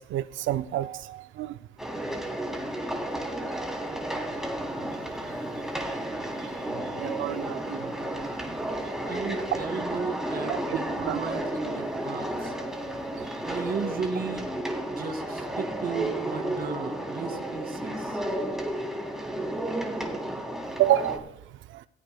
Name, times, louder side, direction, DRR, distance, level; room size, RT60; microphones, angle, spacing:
voice 1, 0.0-1.5 7.0-7.9 10.5-10.6 11.1-11.2 13.3-13.4 20.8-21.3, right 13 dB, 75° right, 0.5 m, -28 dB
sound 1, 1.8-21.2, right 1 dB, ahead, 3.2 m, -32 dB
voice 2, 9.1-12.6 13.5-14.5 14.9-18.2, right 5 dB, 50° right, 2.3 m, -35 dB
19.0 x 16.0 x 2.3 m
cardioid pair, 90°, 20 cm